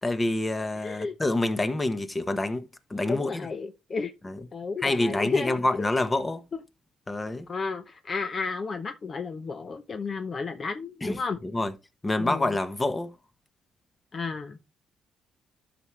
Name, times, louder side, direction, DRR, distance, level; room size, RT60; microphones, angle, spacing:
voice 1, 0.0-3.4 4.2-4.4 4.8-6.4 7.1-7.5 11.0-11.2 11.4-11.7 12.0-13.1, left 2 dB, 20° left, 1.3 m, -27 dB
voice 2, 0.8-1.1 3.1-4.1 4.5-5.9 7.5-11.4 12.2-12.5 14.1-14.6, left 4 dB, 40° left, 0.8 m, -32 dB
12.0 x 6.0 x 3.3 m
cardioid pair, 90°, 0 cm